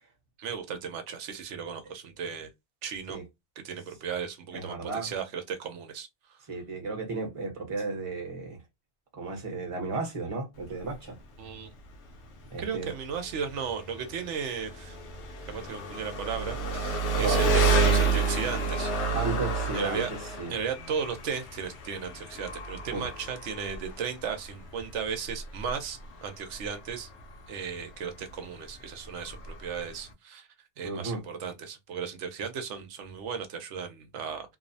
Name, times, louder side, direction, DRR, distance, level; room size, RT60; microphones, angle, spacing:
voice 1, 0.4-2.5 2.8-3.2 3.6-6.4 11.4-11.7 12.6-15.0 15.5-18.9 19.7-20.1 20.5-27.1 27.5-30.5 30.8-34.6, right 6 dB, 85° right, 0.9 m, -35 dB
voice 2, 4.5-5.1 6.5-8.6 9.1-11.2 12.5-12.9 17.2-17.9 19.1-20.6 22.9-23.1 30.8-31.2, right 3 dB, 30° right, 0.8 m, -34 dB
Engine, 10.6-30.1, right 3 dB, 75° left, 0.9 m, -31 dB
2.7 x 2.0 x 2.6 m
omnidirectional pair, 1.2 m